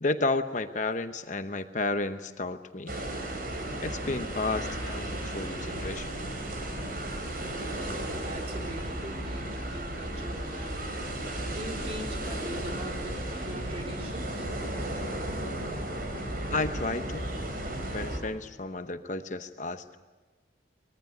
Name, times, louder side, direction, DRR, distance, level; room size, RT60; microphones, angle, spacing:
voice 1, 0.0-2.9 3.8-6.1 16.5-17.3 17.9-20.0, left 3 dB, 40° left, 8 dB, 0.9 m, -32 dB
sound 1, 2.9-18.2, right 1 dB, 50° right, 4.3 m, -34 dB
voice 2, 7.8-10.9 11.5-14.5, equal, 30° right, 1 dB, 3.9 m, -42 dB
24.5 x 21.5 x 9.6 m, 1.2 s
head